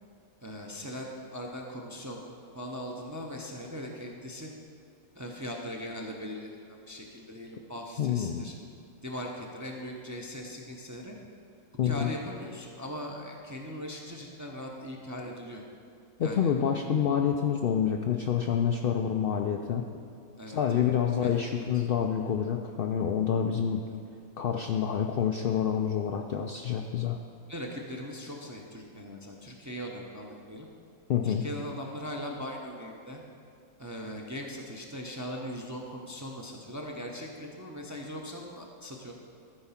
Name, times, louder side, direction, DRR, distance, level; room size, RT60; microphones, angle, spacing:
voice 1, 0.4-2.2 2.5-4.5 5.1-8.5 9.0-11.1 11.8-15.6 16.2-16.5 20.4-20.9 21.2-21.9 23.9-24.0 27.5-30.7 31.2-33.2 33.8-39.1, equal, 20° right, 0 dB, 0.4 m, -40 dB
voice 2, 8.0-8.4 11.8-12.1 16.2-19.8 20.5-23.8 24.4-27.2 31.1-31.4, left 8 dB, 90° left, 3 dB, 0.5 m, -27 dB
13.0 x 4.8 x 5.7 m, 2.4 s
omnidirectional pair, 1.5 m